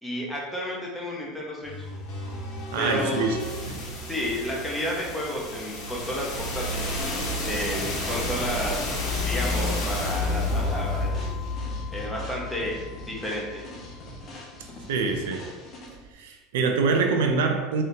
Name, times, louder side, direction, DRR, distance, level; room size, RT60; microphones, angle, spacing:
voice 1, 0.0-1.7 2.8-3.3 4.1-6.9 7.4-8.8 9.2-11.1 11.9-12.7 13.1-13.6, equal, 5° left, -3 dB, 1.1 m, -31 dB
sound 1, 1.6-13.5, left 2 dB, 55° left, 1.3 m, -31 dB
voice 2, 2.7-3.4 3.7-3.8 14.9-15.5 16.2-17.8, right 4 dB, 85° right, 4 dB, 0.5 m, -25 dB
sound 2, 7.0-16.1, left 1 dB, 35° left, 1.0 m, -43 dB
3.8 x 3.3 x 2.8 m, 1.2 s
supercardioid pair, 115°, 0 cm